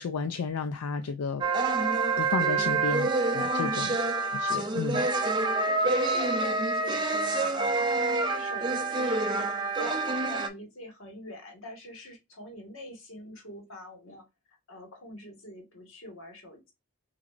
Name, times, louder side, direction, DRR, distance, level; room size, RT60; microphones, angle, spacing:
voice 1, 0.0-1.4 2.2-4.0 4.2-5.1, left 5 dB, 85° left, 0.4 m, -32 dB
sound 1, 1.4-10.5, right 3 dB, 20° right, 0.4 m, -27 dB
voice 2, 5.6-16.7, left 1 dB, 65° left, 1.5 m, -44 dB
6.0 x 2.7 x 2.4 m
head